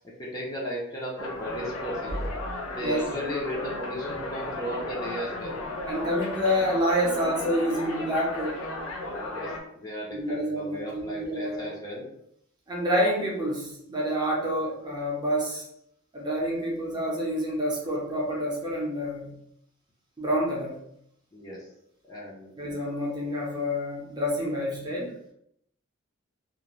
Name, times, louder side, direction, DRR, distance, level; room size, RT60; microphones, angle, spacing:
voice 1, 0.2-2.2 2.7-5.6 9.2-12.0 21.3-21.7 22.0-22.5, equal, 20° left, -5 dB, 0.5 m, -35 dB
sound 1, 1.2-9.6, left 1 dB, 85° left, 0.5 m, -34 dB
voice 2, 5.9-8.6 10.1-11.7 12.7-15.7 16.1-19.4 20.2-20.8 22.6-25.2, equal, 20° right, -3 dB, 0.6 m, -28 dB
2.5 x 2.1 x 3.0 m, 0.74 s
head